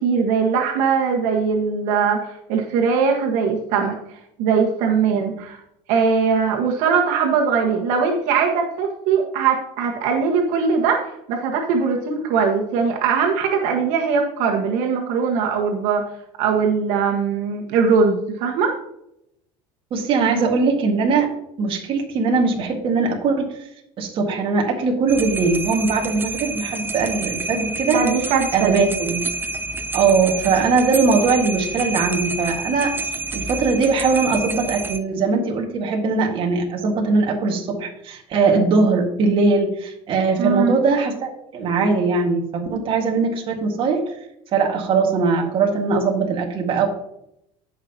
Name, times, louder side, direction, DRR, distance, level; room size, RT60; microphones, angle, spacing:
voice 1, 0.0-4.0 4.4-5.6 5.9-11.0 11.3-16.0 16.4-18.7 27.8-28.8 40.4-40.7, right 5 dB, 75° right, 1 dB, 1.6 m, -20 dB
voice 2, 19.9-23.5 24.0-28.0 28.5-29.2 29.9-32.9 33.3-44.1 44.5-46.9, right 4 dB, 45° right, 1 dB, 1.9 m, -20 dB
sound 1, 25.1-35.0, right 3 dB, 15° right, 0.6 m, -29 dB
16.0 x 5.8 x 2.9 m, 0.79 s
cardioid pair, 135°, 12 cm